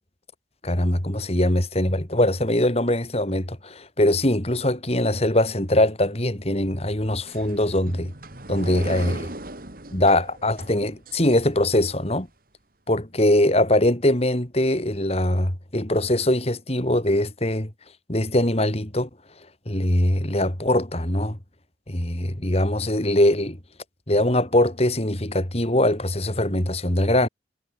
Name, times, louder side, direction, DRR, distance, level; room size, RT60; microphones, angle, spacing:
voice 1, 0.6-8.1 8.5-9.3 9.9-12.3 12.9-17.7 18.1-19.1 19.7-21.4 21.9-23.6 24.1-27.3, left 1 dB, 35° left, 3.1 m, -22 dB
sound 1, 7.3-11.9, right 1 dB, 50° right, 3.5 m, -37 dB
head